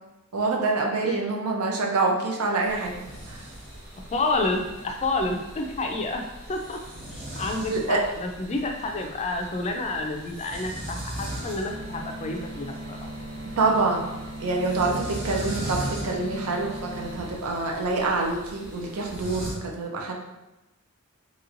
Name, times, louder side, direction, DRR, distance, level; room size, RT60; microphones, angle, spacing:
voice 1, 0.3-3.0 3.3-3.4 7.7-8.1 13.6-14.1 14.4-20.1, right 3 dB, 85° right, 0 dB, 0.6 m, -26 dB
sound 1, 2.6-19.5, right 1 dB, 45° right, 1.2 m, -39 dB
voice 2, 4.1-6.2 6.5-6.8 7.1-13.1, left 2 dB, 30° left, 3 dB, 0.3 m, -29 dB
sound 2, 11.1-17.3, right 1 dB, 60° right, 0.9 m, -39 dB
3.0 x 3.0 x 2.5 m, 1.0 s
head